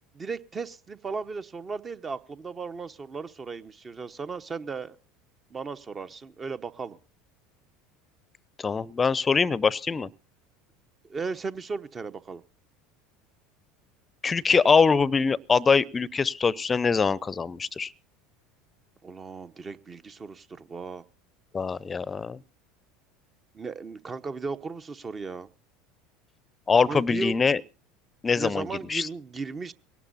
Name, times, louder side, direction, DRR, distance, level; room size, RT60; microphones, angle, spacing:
voice 1, 0.1-5.0 5.5-7.0 11.1-12.4 19.0-21.0 23.5-25.5 26.9-27.4 28.4-29.7, right 4 dB, 30° right, 1.0 m, -36 dB
voice 2, 8.6-10.1 14.2-17.9 21.5-22.4 26.7-27.6 28.2-29.1, left 5 dB, 25° left, 0.7 m, -23 dB
22.0 x 18.5 x 2.7 m
hypercardioid pair, 75°, 0 cm